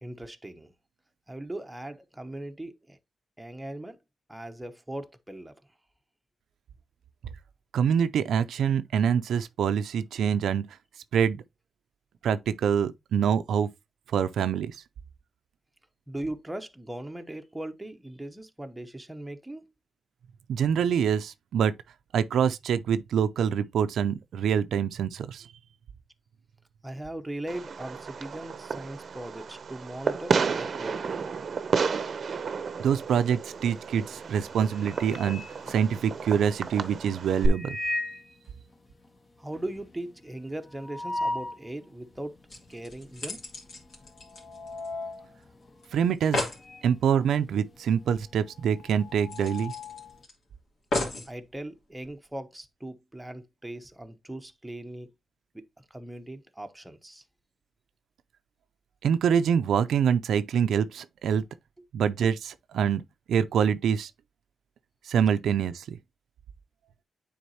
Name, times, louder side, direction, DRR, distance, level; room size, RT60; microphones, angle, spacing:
voice 1, 0.0-0.7 1.3-3.0 3.4-4.0 4.3-5.5 16.1-19.7 26.8-31.3 39.4-43.4 51.3-55.1 55.5-57.2, right 1 dB, 5° right, 0.8 m, -39 dB
voice 2, 7.7-10.6 11.1-11.4 12.2-13.7 14.1-14.8 20.5-21.7 22.1-25.5 32.8-35.4 35.7-37.8 45.9-46.4 46.8-49.7 59.0-61.4 61.9-63.0 63.3-64.1 65.1-66.0, right 8 dB, 85° right, 0.4 m, -25 dB
Fireworks, 27.5-37.5, right 5 dB, 50° right, 0.7 m, -32 dB
sound 1, 33.6-33.9 34.3-36.4 37.4-38.3 38.7-38.8 39.0-39.1 39.5-41.7 42.2-42.3 43.1-43.4 43.6-46.9 47.2-50.2, left 2 dB, 30° left, 1.0 m, -37 dB
sound 2, 42.1-42.2 42.5-45.1 45.4-45.5 45.8-45.9 46.1-46.6 48.1-48.2 48.6-48.7 49.3-50.3 50.9-51.3 52.0-52.1, left 2 dB, 65° left, 2.6 m, -34 dB
9.3 x 4.0 x 2.8 m
cardioid pair, 115°, 0 cm